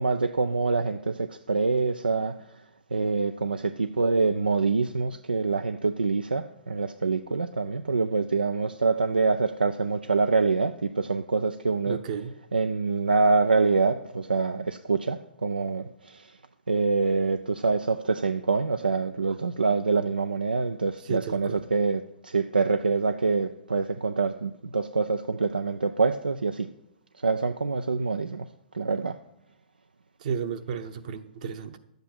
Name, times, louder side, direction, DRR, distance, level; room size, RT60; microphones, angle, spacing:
voice 1, 0.0-2.6 2.9-16.4 16.7-26.7 27.1-28.5 28.7-29.2, right 4 dB, 85° right, 0.4 m, -26 dB
voice 2, 11.9-12.3 21.1-21.6 30.2-31.8, right 7 dB, 55° right, 0.9 m, -33 dB
11.5 x 7.9 x 4.3 m
figure-of-eight pair, 115°, 5 cm